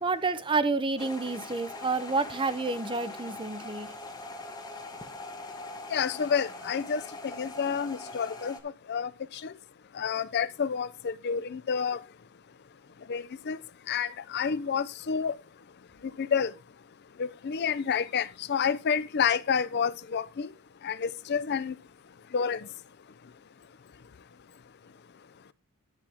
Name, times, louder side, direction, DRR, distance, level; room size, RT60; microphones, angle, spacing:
voice 1, 0.0-3.9, right 3 dB, 20° right, 0.6 m, -29 dB
sound 1, 1.0-8.6, left 2 dB, 20° left, 1.1 m, -42 dB
voice 2, 5.9-8.6 8.9-9.5 9.9-12.0 13.1-13.6 13.9-15.4 16.2-16.5 17.2-20.5 20.8-21.7 22.3-22.6, left 6 dB, 50° left, 0.4 m, -29 dB
11.5 x 7.0 x 3.4 m
head